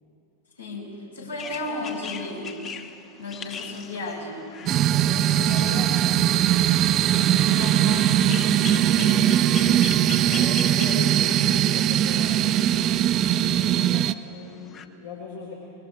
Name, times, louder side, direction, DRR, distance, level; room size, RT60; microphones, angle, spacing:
voice 1, 0.6-2.5 3.1-4.4 7.4-9.4 13.3-13.8, left 2 dB, 75° left, -3 dB, 5.6 m, -35 dB
voice 2, 1.2-2.0 3.9-4.0 5.0-6.6 7.4-8.0 9.6-12.9 13.9-15.5, left 4 dB, 60° left, -3 dB, 3.2 m, -40 dB
sound 1, 1.4-14.9, left 6 dB, 30° left, 1.0 m, -41 dB
sound 2, 4.7-14.1, right 11 dB, 35° right, 0.5 m, -20 dB
26.5 x 21.5 x 4.9 m, 2.6 s
figure-of-eight pair, 90°, 0 cm